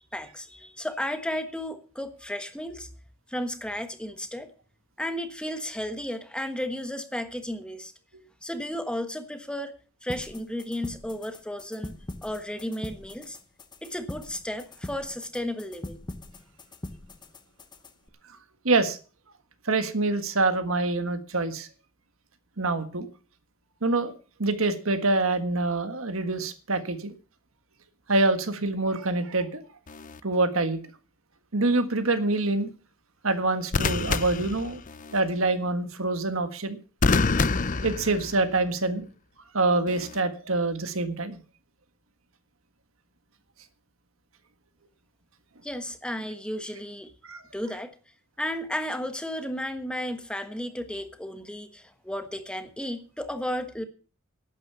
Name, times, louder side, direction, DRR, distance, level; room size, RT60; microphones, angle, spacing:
voice 1, 0.1-2.9 3.3-4.5 5.0-7.9 8.4-9.7 10.0-12.0 12.2-13.4 13.8-16.0 45.6-47.1 47.5-47.9 48.4-53.8, left 1 dB, 5° left, 8 dB, 1.3 m, -33 dB
sound 1, 10.1-18.1, left 1 dB, 20° left, 1.0 m, -42 dB
voice 2, 18.6-19.0 19.6-21.7 22.6-23.1 23.8-24.1 24.4-27.1 28.1-29.6 30.2-30.8 31.5-32.7 33.2-34.8 35.1-36.8 37.8-39.1 39.5-41.4 47.2-47.4, right 2 dB, 75° right, 9 dB, 1.6 m, -25 dB
sound 2, 29.9-30.2 33.7-35.2 37.0-38.7 39.9-40.2, left 4 dB, 40° left, 0.6 m, -27 dB
11.5 x 9.1 x 6.9 m, 0.38 s
head